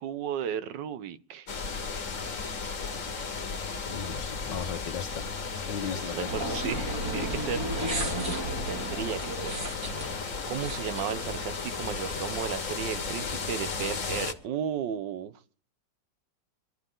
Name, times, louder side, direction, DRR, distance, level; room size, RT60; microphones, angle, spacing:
voice 1, 0.0-1.5 4.0-4.4 5.8-7.7 8.7-9.6 10.5-15.3, right 8 dB, 85° right, 1.5 m, -34 dB
sound 1, 1.5-14.3, left 4 dB, 50° left, 1.7 m, -34 dB
voice 2, 3.9-5.2 5.7-6.6, left 7 dB, 90° left, 1.6 m, -36 dB
sound 2, 6.3-11.7, right 2 dB, 55° right, 3.0 m, -34 dB
24.0 x 12.0 x 3.8 m
omnidirectional pair, 1.9 m